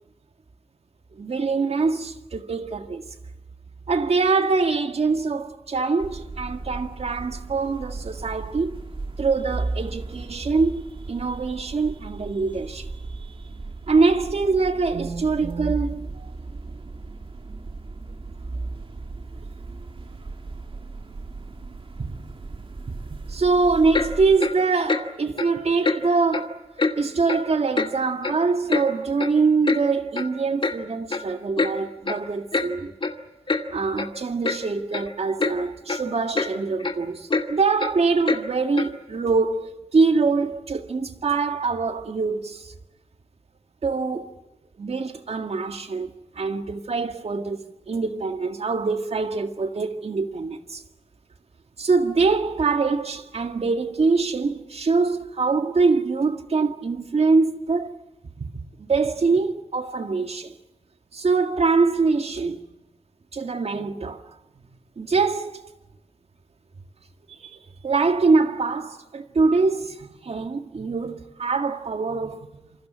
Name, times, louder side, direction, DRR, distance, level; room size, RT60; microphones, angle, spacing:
voice 1, 1.2-3.0 3.9-8.8 9.2-12.9 13.9-16.3 22.0-22.2 23.1-26.6 27.0-32.9 33.7-42.7 43.8-44.3 44.8-50.8 51.8-58.0 58.4-58.5 58.8-60.6 61.1-62.7 63.3-64.2 65.0-65.7 67.3-67.5 67.8-72.7, right 4 dB, 70° right, 2.0 m, -24 dB
sound 1, 6.0-24.4, right 3 dB, 55° right, 2.3 m, -36 dB
Clock, 23.9-24.1 24.4-24.6 24.9-25.0 25.4-25.5 25.8-26.0 26.3-26.5 26.8-26.9 27.3-27.4 27.8-27.9 28.2-28.9 29.2-29.3 29.6-29.8 30.1-30.3 30.6-30.8 31.1-31.2 31.6-31.7 32.1-32.2 32.5-32.7 33.0-33.1 33.5-33.6 34.0-34.1 34.4-34.6 34.9-35.1 35.4-35.5 35.9-36.0 36.3-36.5 36.8-36.9 37.3-37.4 37.8-37.9 38.3-38.4 38.8-38.9, left 3 dB, 50° left, 2.2 m, -24 dB
27.5 x 25.0 x 7.5 m
wide cardioid pair, 80°, 11 cm